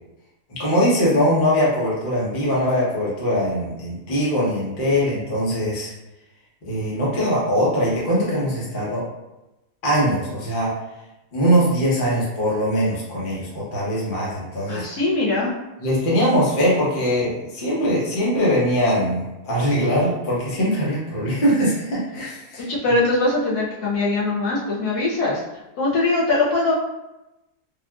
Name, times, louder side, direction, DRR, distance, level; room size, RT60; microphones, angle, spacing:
voice 1, 0.5-5.9 6.7-9.0 9.8-10.7 11.3-14.8 15.8-22.7, equal, 40° left, -7 dB, 1.0 m, -21 dB
voice 2, 14.7-15.5 22.7-25.4 25.8-26.7, left 2 dB, 75° left, -5 dB, 1.1 m, -21 dB
3.5 x 2.4 x 2.3 m, 0.98 s
omnidirectional pair, 1.7 m